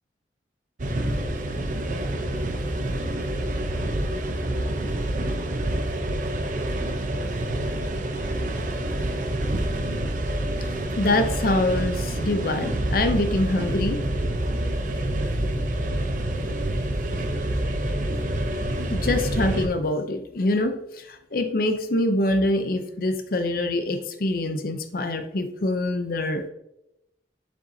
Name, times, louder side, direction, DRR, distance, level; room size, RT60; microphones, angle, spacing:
sound 1, 0.8-19.7, right 1 dB, 45° right, 0.7 m, -27 dB
voice 1, 11.0-14.0 18.9-26.5, left 1 dB, 55° left, 7 dB, 0.6 m, -25 dB
7.0 x 5.3 x 2.7 m, 0.84 s
head